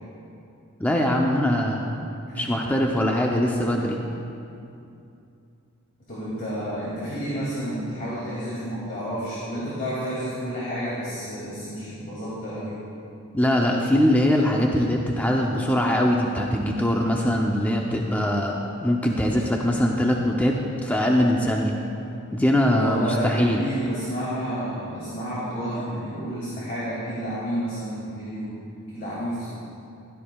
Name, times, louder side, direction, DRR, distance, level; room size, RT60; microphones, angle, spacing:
voice 1, 0.8-1.8 2.3-4.0 13.3-21.8 22.3-23.6, equal, 5° left, -1 dB, 0.6 m, -22 dB
voice 2, 6.1-12.8 22.7-28.5 28.9-29.5, equal, 40° left, -9 dB, 2.5 m, -30 dB
15.0 x 13.0 x 2.3 m, 2.6 s
head